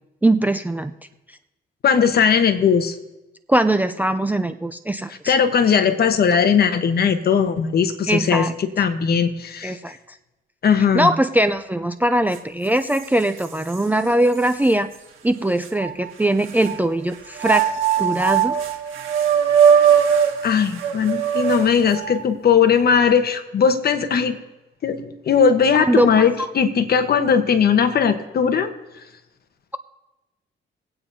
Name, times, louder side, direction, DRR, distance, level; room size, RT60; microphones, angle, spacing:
voice 1, 0.2-0.9 3.5-5.3 8.1-8.5 9.6-10.0 10.9-14.9 15.2-17.7 18.0-18.6 25.7-26.5, right 1 dB, 10° right, 9 dB, 0.4 m, -21 dB
voice 2, 1.8-3.0 5.3-9.7 10.6-11.1 20.4-24.4 24.8-28.7, left 7 dB, 50° left, 9 dB, 1.1 m, -18 dB
sound 1, 12.3-12.4 12.9-13.8 14.4-14.5 15.6-16.8 17.3-22.3, right 8 dB, 80° right, 1.6 m, -20 dB
24.0 x 8.8 x 2.7 m, 1.0 s
cardioid pair, 90°, 20 cm